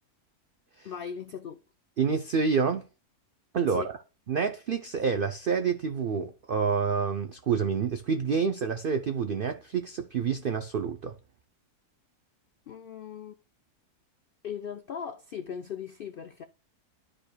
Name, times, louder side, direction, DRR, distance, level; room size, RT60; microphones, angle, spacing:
voice 1, 0.8-1.6 3.7-3.9 12.7-13.3 14.4-16.4, left 7 dB, 90° left, 0.4 m, -38 dB
voice 2, 2.0-2.8 3.5-3.8 4.3-11.1, right 6 dB, 90° right, 0.4 m, -28 dB
12.0 x 5.1 x 2.2 m
omnidirectional pair, 1.6 m